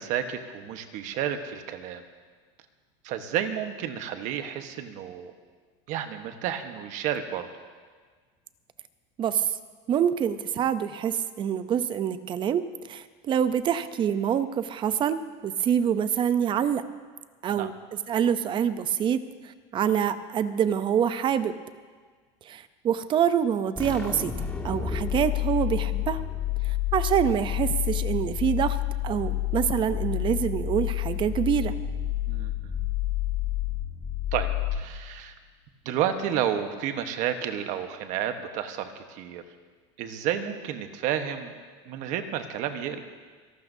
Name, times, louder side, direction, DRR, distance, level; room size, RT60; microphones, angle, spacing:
voice 1, 0.0-2.0 3.0-5.3 5.9-7.5 17.5-17.7 32.3-32.8 34.3-35.3 35.8-39.4 40.0-41.5 41.9-43.0, right 9 dB, 55° right, 7 dB, 1.2 m, -31 dB
voice 2, 9.9-16.8 17.4-17.7 18.1-19.2 19.7-21.6 22.5-24.3 24.6-26.2 26.9-28.8 29.0-31.7, right 8 dB, 30° right, 12 dB, 0.6 m, -26 dB
sound 1, 23.8-35.2, left 12 dB, 10° left, 1.6 m, -29 dB
28.5 x 12.0 x 2.7 m, 1.5 s
supercardioid pair, 135°, 15 cm